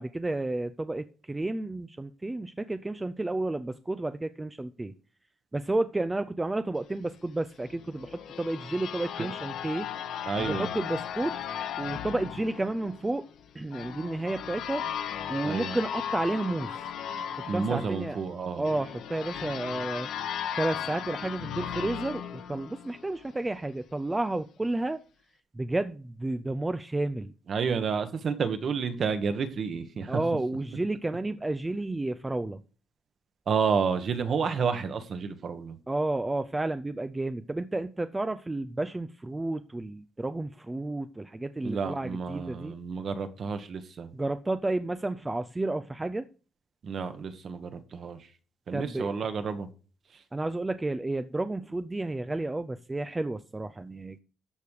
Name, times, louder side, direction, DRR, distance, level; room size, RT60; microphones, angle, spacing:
voice 1, 0.0-4.9 5.5-9.9 10.4-11.3 11.8-13.2 13.5-14.8 15.3-16.7 17.5-18.2 18.6-20.1 20.6-22.2 22.5-25.0 25.6-27.3 30.1-32.6 35.9-42.7 44.1-46.3 48.7-49.1 50.3-54.2, right 2 dB, 10° right, 0.4 m, -31 dB
sound 1, 7.7-23.3, left 9 dB, 75° left, 1.3 m, -36 dB
voice 2, 10.3-10.7 15.4-15.8 17.5-18.6 27.5-30.2 33.5-35.8 41.6-44.1 46.8-48.2 48.7-49.7, right 6 dB, 40° right, 1.3 m, -30 dB
13.5 x 5.3 x 6.4 m
cardioid pair, 180°, 0 cm